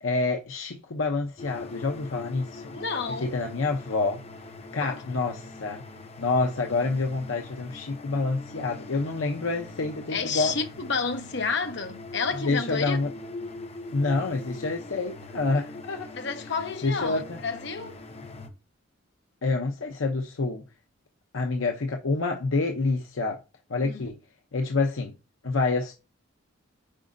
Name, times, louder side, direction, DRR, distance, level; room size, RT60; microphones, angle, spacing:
voice 1, 0.0-2.7 3.2-4.2 4.7-5.8 6.2-10.5 12.4-13.1 13.9-16.1 16.8-17.4 19.4-20.6 21.3-23.4 23.7-24.2 24.5-25.1 25.4-25.9, left 3 dB, 80° left, 0.7 m, -27 dB
sound 1, 1.4-18.5, left 2 dB, 30° left, 0.8 m, -42 dB
voice 2, 2.7-3.3 4.8-5.2 10.1-13.0 16.1-18.0 23.7-24.1, left 5 dB, 55° left, 1.0 m, -31 dB
8.9 x 5.2 x 2.6 m
head